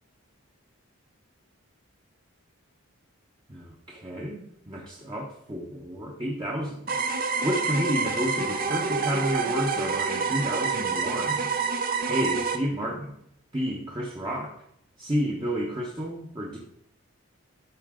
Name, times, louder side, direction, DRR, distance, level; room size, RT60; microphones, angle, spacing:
voice 1, 3.5-6.9 7.4-11.5 12.1-13.1 13.5-14.5 15.0-16.6, equal, 20° right, -3 dB, 1.0 m, -30 dB
sound 1, 6.9-12.6, right 4 dB, 40° right, 0.6 m, -27 dB
12.5 x 4.6 x 3.8 m, 0.71 s
head